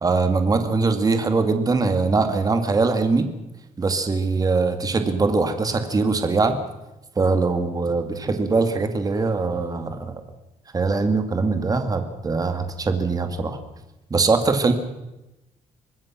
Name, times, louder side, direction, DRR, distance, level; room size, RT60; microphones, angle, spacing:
voice 1, 0.0-3.3 3.8-6.6 7.2-10.2 10.7-13.6 14.1-14.7, right 4 dB, 25° right, 7 dB, 2.2 m, -22 dB
25.0 x 20.0 x 6.1 m, 0.97 s
cardioid pair, 135°, 14 cm